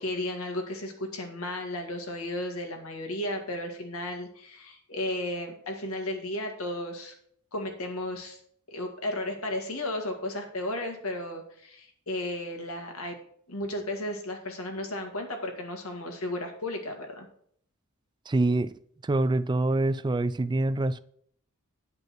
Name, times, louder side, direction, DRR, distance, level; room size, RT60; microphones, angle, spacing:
voice 1, 0.0-7.1 7.5-8.4 8.7-13.2 13.5-17.3, left 1 dB, 70° left, 4 dB, 1.9 m, -34 dB
voice 2, 18.3-21.0, right 2 dB, 20° right, 15 dB, 0.4 m, -26 dB
9.6 x 5.2 x 6.0 m, 0.63 s
head